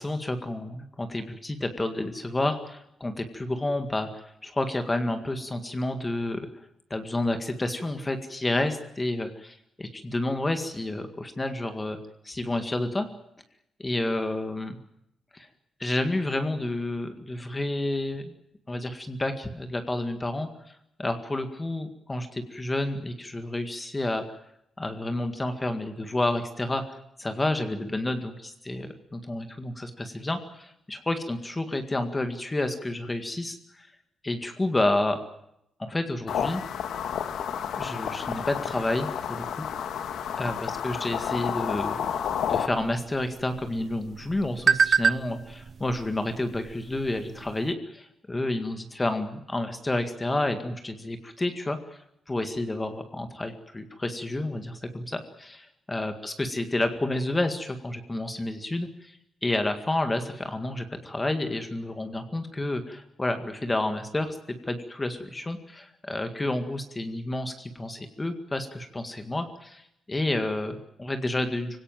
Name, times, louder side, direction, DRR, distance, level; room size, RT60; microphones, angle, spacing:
voice 1, 0.0-6.5 6.9-12.0 12.2-13.1 13.8-14.8 15.3-15.5 15.8-18.3 18.7-20.5 21.0-24.2 24.8-33.9 34.2-35.2 35.8-36.6 37.8-39.7 40.4-52.0 52.3-55.6 55.9-64.4 64.7-69.8 70.1-71.8, left 2 dB, 15° left, 7 dB, 2.0 m, -30 dB
sound 1, 36.3-42.7, left 8 dB, 85° left, 2.1 m, -30 dB
sound 2, 42.6-47.7, right 6 dB, 45° right, 0.8 m, -29 dB
25.5 x 17.5 x 9.1 m, 0.80 s
wide cardioid pair, 160°, 0 cm